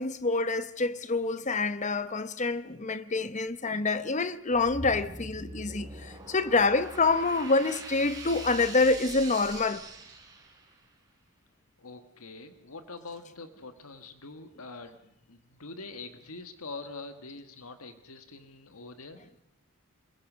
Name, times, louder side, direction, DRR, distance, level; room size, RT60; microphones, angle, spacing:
voice 1, 0.0-9.8, left 3 dB, 35° left, 0.9 m, -27 dB
sound 1, 4.5-10.8, right 2 dB, 20° right, 4.4 m, -42 dB
voice 2, 11.8-19.2, left 3 dB, 80° left, 1.7 m, -44 dB
26.5 x 21.5 x 6.2 m
head